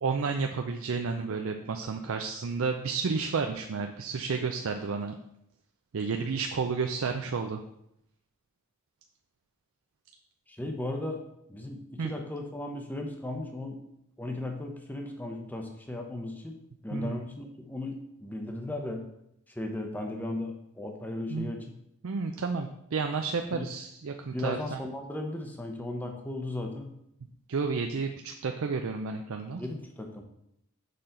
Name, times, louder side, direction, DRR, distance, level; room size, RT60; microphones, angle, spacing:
voice 1, 0.0-5.2 5.9-7.6 12.0-12.1 16.9-17.2 21.3-21.5 22.0-24.8 27.5-29.6, right 4 dB, 65° right, 4 dB, 0.4 m, -31 dB
voice 2, 10.5-11.2 11.5-13.8 14.2-16.6 16.8-19.0 19.6-21.8 23.5-23.7 24.3-26.9 29.6-30.2, left 1 dB, 10° left, 3 dB, 0.7 m, -36 dB
6.7 x 5.6 x 3.9 m, 0.77 s
head